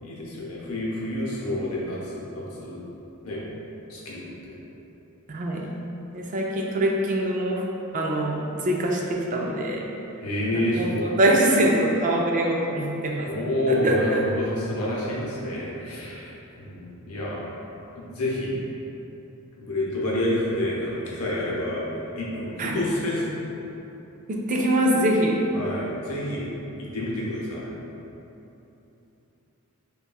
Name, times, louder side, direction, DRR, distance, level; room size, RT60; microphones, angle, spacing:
voice 1, 0.0-2.8 3.2-3.4 3.9-4.6 10.2-11.1 13.3-16.3 16.6-17.5 18.0-18.5 19.6-21.9 22.2-23.4 25.5-26.5 26.8-27.8, left 1 dB, 85° left, -5 dB, 0.8 m, -28 dB
voice 2, 5.3-5.7 6.1-7.6 7.9-9.9 10.5-13.3 13.7-14.2 22.6-22.8 24.3-25.4, right 1 dB, 35° right, -1 dB, 0.3 m, -24 dB
5.4 x 2.3 x 2.3 m, 3.0 s
head